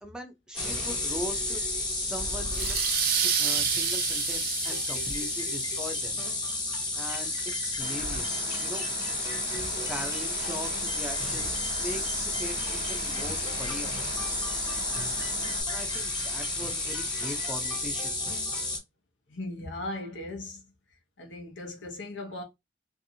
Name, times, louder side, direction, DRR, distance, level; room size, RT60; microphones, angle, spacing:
voice 1, 0.0-1.6 1.9-6.2 6.9-7.3 7.6-8.9 9.9-13.9 15.6-18.2, equal, 5° right, 0.5 m, -40 dB
sound 1, 0.5-18.8, left 2 dB, 25° left, 0.9 m, -31 dB
sound 2, 2.5-6.0, right 8 dB, 55° right, 0.4 m, -29 dB
Wind, 7.8-15.6, right 4 dB, 70° right, 0.8 m, -42 dB
voice 2, 19.3-20.7 21.2-22.4, left 2 dB, 85° left, 0.9 m, -38 dB
2.7 x 2.5 x 2.7 m
head